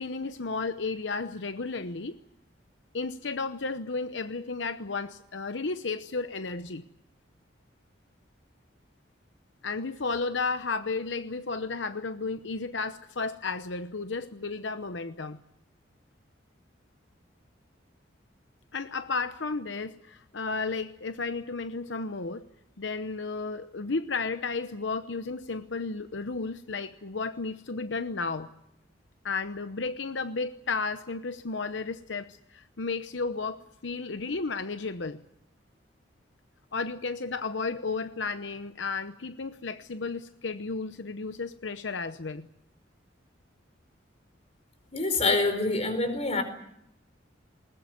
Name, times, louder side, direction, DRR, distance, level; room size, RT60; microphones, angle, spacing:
voice 1, 0.0-2.2 2.9-6.8 9.6-15.4 18.7-22.4 22.8-28.5 29.2-35.2 36.7-42.5, left 4 dB, 80° left, 10 dB, 0.9 m, -33 dB
voice 2, 44.9-46.4, left 3 dB, 35° left, 9 dB, 4.5 m, -26 dB
20.5 x 20.0 x 9.7 m, 0.77 s
head